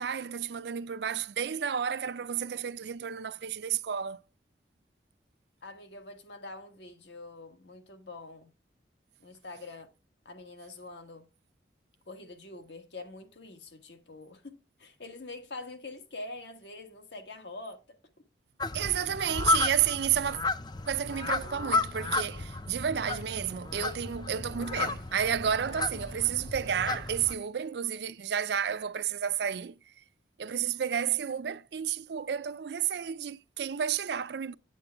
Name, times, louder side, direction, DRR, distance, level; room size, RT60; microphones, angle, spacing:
voice 1, 0.0-4.2 18.7-20.4 20.9-29.8 30.4-34.6, right 8 dB, 65° right, 0.4 m, -31 dB
voice 2, 5.6-8.5 9.2-9.9 10.2-11.3 12.1-17.8, left 2 dB, 75° left, 1.5 m, -45 dB
sound 1, 18.6-27.4, left 3 dB, 25° left, 0.5 m, -33 dB
8.8 x 8.3 x 3.5 m
head